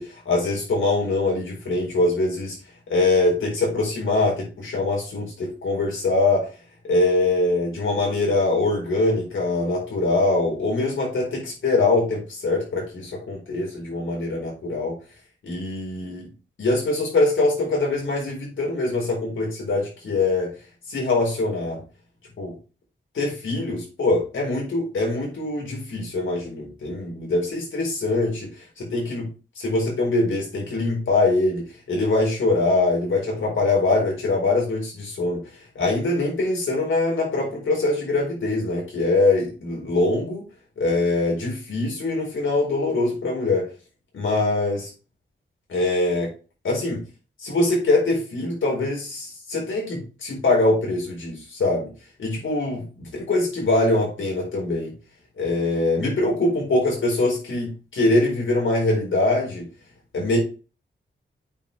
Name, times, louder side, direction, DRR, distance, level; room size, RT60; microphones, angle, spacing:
voice 1, 0.0-2.6 2.9-6.5 6.8-14.9 15.4-16.3 16.6-20.5 20.9-21.8 22.4-22.5 23.1-28.5 28.8-29.3 29.6-35.4 35.7-40.4 40.8-43.6 44.1-44.9 45.7-46.3 46.6-47.0 47.4-51.9 52.2-54.9 55.4-59.7 60.1-60.4, left 2 dB, 85° left, -2 dB, 4.6 m, -23 dB
8.4 x 5.2 x 3.5 m, 0.33 s
cardioid pair, 70°, 20 cm